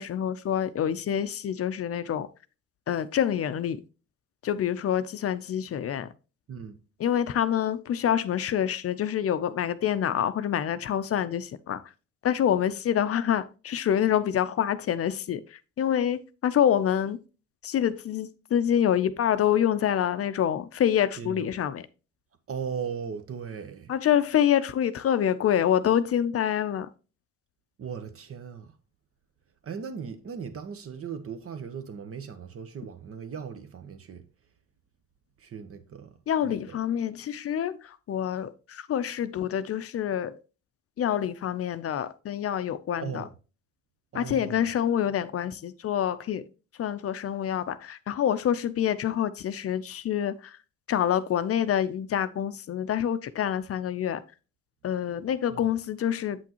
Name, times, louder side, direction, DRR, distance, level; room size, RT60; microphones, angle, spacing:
voice 1, 0.0-2.3 2.9-3.8 4.4-6.1 7.0-11.8 12.2-17.2 17.6-21.9 23.9-26.9 36.3-40.4 41.0-43.2 44.1-46.5 46.8-50.6 50.9-54.2 54.8-56.4, left 9 dB, 50° left, 0.5 m, -26 dB
voice 2, 21.2-21.5 22.5-23.9 27.8-28.7 29.6-34.3 35.4-36.1 36.4-36.8 43.0-43.3 44.1-44.7 55.5-55.7, right 6 dB, 50° right, 1.0 m, -38 dB
7.8 x 6.0 x 2.9 m
cardioid pair, 90°, 30 cm